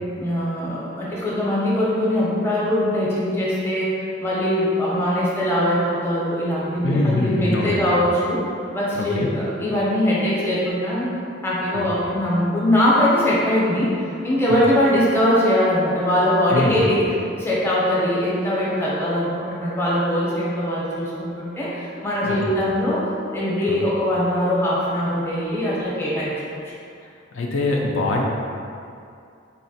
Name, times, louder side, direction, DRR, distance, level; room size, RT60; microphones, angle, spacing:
voice 1, 0.2-8.4 8.7-11.1 11.4-13.9 14.2-17.0 17.4-23.0 23.3-26.3, left 1 dB, 15° left, -7 dB, 0.6 m, -21 dB
voice 2, 6.8-7.9 8.9-9.3 11.7-11.9 14.5-14.8 16.5-16.8 22.2-22.4 23.7-23.8 27.3-28.2, left 2 dB, 75° left, -1 dB, 0.4 m, -23 dB
3.9 x 2.1 x 2.7 m, 2.5 s
head